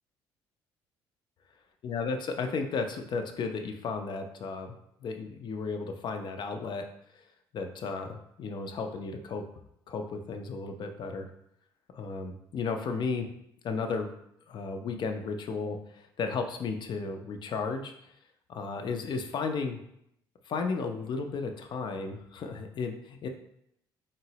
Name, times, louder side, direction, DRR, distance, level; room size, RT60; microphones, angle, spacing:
voice 1, 1.8-6.8 7.5-9.4 9.9-11.3 11.9-13.3 13.6-14.1 14.5-15.8 16.2-17.9 18.5-19.8 20.5-23.3, left 4 dB, 50° left, 5 dB, 0.5 m, -34 dB
3.6 x 2.0 x 2.8 m, 0.76 s
supercardioid pair, 65°, 10 cm